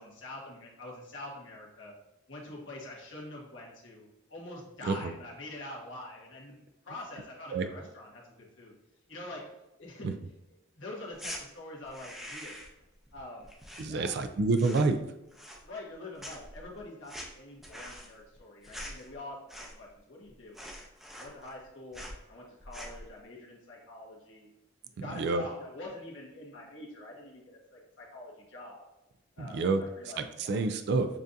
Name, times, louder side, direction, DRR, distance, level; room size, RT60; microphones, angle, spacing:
voice 1, 0.0-1.9 2.3-8.2 8.6-8.7 9.1-9.4 9.8-10.1 10.7-12.6 13.1-13.5 13.8-14.1 15.6-20.6 21.2-22.0 22.3-24.5 25.0-28.8 29.4-30.6, left 2 dB, 70° left, -3 dB, 1.4 m, -45 dB
sound 1, 11.1-11.4 11.8-12.8 13.1-14.3 14.5-15.0 15.3-15.9 16.2-20.0 20.2-20.3 20.5-21.6 21.9-22.2 22.6-23.1, equal, ahead, 0.5 m, -44 dB
voice 2, 13.8-15.0 25.0-25.5 29.4-29.8 30.2-31.1, right 3 dB, 55° right, 8 dB, 0.3 m, -28 dB
7.2 x 2.5 x 2.6 m, 0.94 s
head